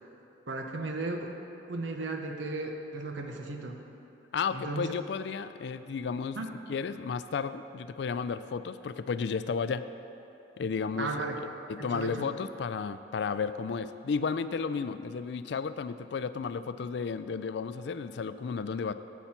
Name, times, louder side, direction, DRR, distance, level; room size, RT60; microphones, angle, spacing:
voice 1, 0.5-1.3 1.7-3.8 4.5-4.9 6.3-6.5 11.0-11.4 11.8-12.3, right 2 dB, 85° right, 3 dB, 0.9 m, -35 dB
voice 2, 4.3-6.4 6.7-9.8 10.6-11.1 11.7-18.9, left 5 dB, 65° left, 12 dB, 0.3 m, -33 dB
10.0 x 8.1 x 4.3 m, 2.9 s
head